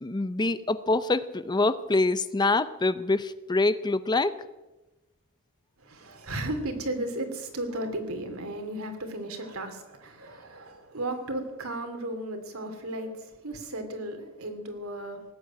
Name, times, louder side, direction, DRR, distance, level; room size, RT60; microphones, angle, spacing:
voice 1, 0.0-4.4, left 2 dB, 20° left, 14 dB, 0.6 m, -25 dB
voice 2, 5.8-15.2, right 1 dB, 80° right, 5 dB, 2.8 m, -35 dB
18.5 x 8.5 x 9.1 m, 1.1 s
head